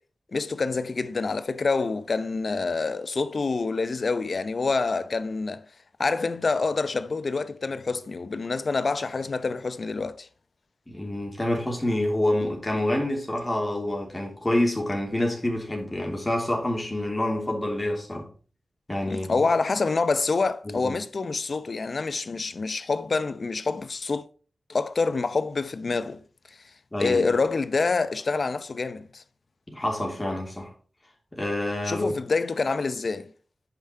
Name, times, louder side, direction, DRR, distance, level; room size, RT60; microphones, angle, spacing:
voice 1, 0.3-5.6 6.0-10.3 19.1-24.2 24.7-26.2 27.0-29.2 31.8-33.3, left 4 dB, 55° left, 0.7 m, -27 dB
voice 2, 10.9-18.3 18.9-19.4 20.6-21.0 26.9-27.2 29.7-30.7 31.3-32.2, left 1 dB, 15° left, 3.2 m, -27 dB
10.0 x 5.9 x 4.5 m
wide cardioid pair, 100°, 0 cm